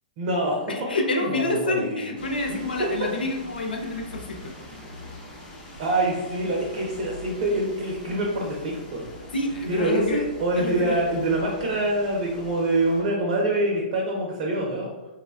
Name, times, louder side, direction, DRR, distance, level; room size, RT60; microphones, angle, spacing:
voice 1, 0.2-0.7 1.2-2.0 5.8-9.0 9.7-14.9, right 1 dB, 45° right, -2 dB, 0.6 m, -25 dB
voice 2, 0.7-4.6 9.3-10.2 10.6-11.0, left 2 dB, 75° left, 2 dB, 0.4 m, -28 dB
sound 1, 2.2-13.0, left 1 dB, 15° left, 0.7 m, -43 dB
3.5 x 2.1 x 2.3 m, 1.1 s
figure-of-eight pair, 115°, 5 cm